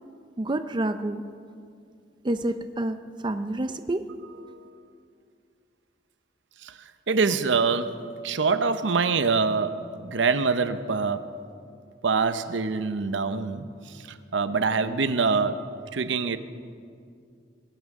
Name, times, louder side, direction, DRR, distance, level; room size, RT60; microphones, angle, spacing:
voice 1, 0.4-1.2 2.2-4.1, right 1 dB, 25° right, 9 dB, 0.5 m, -28 dB
voice 2, 7.1-11.3 12.0-16.4, right 4 dB, 75° right, 11 dB, 0.7 m, -25 dB
21.0 x 17.0 x 3.6 m, 2.3 s
head